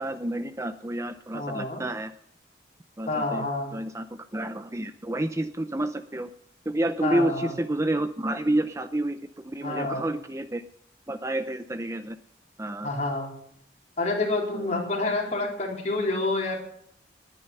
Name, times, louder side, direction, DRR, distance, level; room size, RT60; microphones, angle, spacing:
voice 1, 0.0-2.1 3.0-3.4 3.7-4.1 4.3-6.3 6.7-9.2 9.4-10.6 11.1-12.2 12.6-12.9 14.5-14.7, right 1 dB, 15° right, 10 dB, 0.6 m, -29 dB
voice 2, 1.3-1.8 3.1-3.7 7.0-7.5 9.6-10.0 12.8-13.3 14.0-16.6, left 2 dB, 40° left, 0 dB, 4.3 m, -28 dB
19.5 x 10.0 x 5.5 m, 0.68 s
head